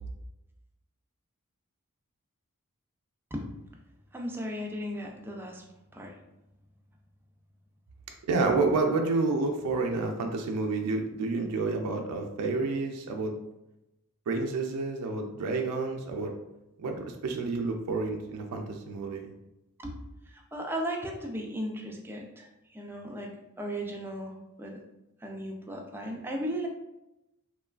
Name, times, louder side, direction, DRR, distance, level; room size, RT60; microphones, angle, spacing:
voice 1, 4.1-5.6 5.9-6.1 19.8-19.9 20.5-22.5 22.7-23.3 23.6-24.8 25.2-26.7, equal, 10° right, 0 dB, 0.3 m, -36 dB
voice 2, 8.3-13.3 14.3-16.3 16.8-19.3, right 3 dB, 90° right, 4 dB, 0.3 m, -29 dB
3.0 x 2.2 x 2.3 m, 0.92 s
head